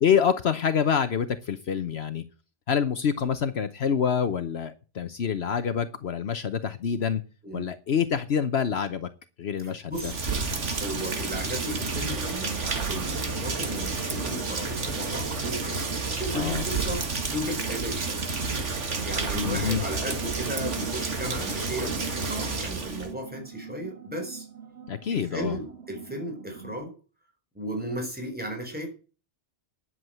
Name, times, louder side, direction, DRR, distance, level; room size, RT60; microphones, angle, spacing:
voice 1, 0.0-2.2 2.7-7.2 7.5-9.1 9.4-10.1 16.3-16.6 19.4-19.8 24.9-25.6, left 7 dB, 65° left, 11 dB, 1.1 m, -26 dB
voice 2, 9.6-10.3 10.6-12.6 12.9-18.2 19.0-24.5 25.1-26.9 27.5-28.9, equal, 10° right, 3 dB, 4.5 m, -35 dB
Rain, 9.9-23.1, right 4 dB, 85° right, 2.0 m, -30 dB
sound 1, 18.5-26.8, right 6 dB, 65° right, 2.1 m, -46 dB
11.0 x 7.9 x 9.0 m, 0.35 s
omnidirectional pair, 1.2 m